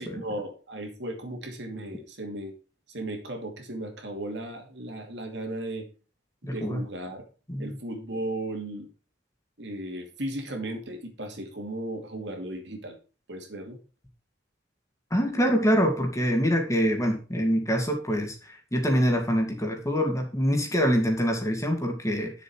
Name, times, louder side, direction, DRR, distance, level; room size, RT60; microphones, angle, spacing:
voice 1, 0.0-2.5 2.9-5.9 6.4-7.2 7.6-8.9 9.6-12.9 13.3-13.8, right 1 dB, 70° right, 3 dB, 2.6 m, -36 dB
voice 2, 6.4-6.8 7.5-7.8 15.1-22.3, equal, 15° left, 3 dB, 2.3 m, -25 dB
10.0 x 7.1 x 4.7 m, 0.34 s
head